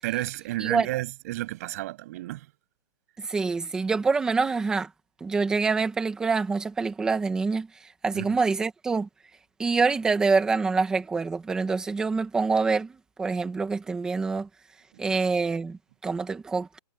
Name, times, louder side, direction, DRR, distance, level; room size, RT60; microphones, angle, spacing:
voice 1, 0.0-2.5 8.1-8.4 14.9-15.2, right 17 dB, 20° right, 7.6 m, -32 dB
voice 2, 3.2-4.9 5.2-7.7 8.0-9.1 9.6-14.5 15.0-16.8, right 4 dB, 5° right, 1.6 m, -26 dB
hypercardioid pair, 175°, 21 cm